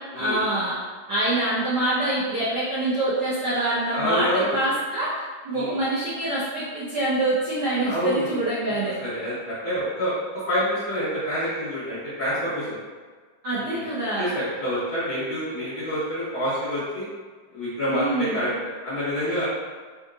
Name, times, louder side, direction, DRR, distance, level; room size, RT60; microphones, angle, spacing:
voice 1, 0.1-0.7 1.1-5.1 5.4-9.0 13.4-14.3 17.9-18.4, right 1 dB, 75° right, -12 dB, 1.1 m, -25 dB
voice 2, 3.9-4.6 5.5-5.8 7.8-8.3 9.0-12.8 13.6-13.9 14.2-17.1 17.5-18.5 18.8-19.4, equal, 50° left, -14 dB, 1.8 m, -27 dB
5.0 x 2.8 x 2.4 m, 1.5 s
omnidirectional pair, 3.6 m